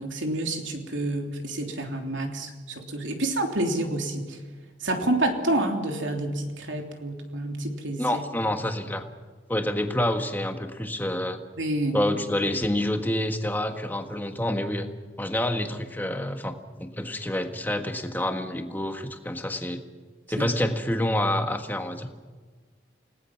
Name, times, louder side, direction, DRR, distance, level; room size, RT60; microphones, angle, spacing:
voice 1, 0.0-4.4 4.8-8.0 11.6-12.0 20.4-20.5, right 1 dB, 85° right, 3 dB, 3.2 m, -28 dB
voice 2, 8.0-9.0 9.5-11.4 11.9-14.9 15.2-19.8 20.3-22.1, left 1 dB, 10° left, 5 dB, 1.5 m, -28 dB
29.5 x 18.5 x 5.9 m, 1.4 s
head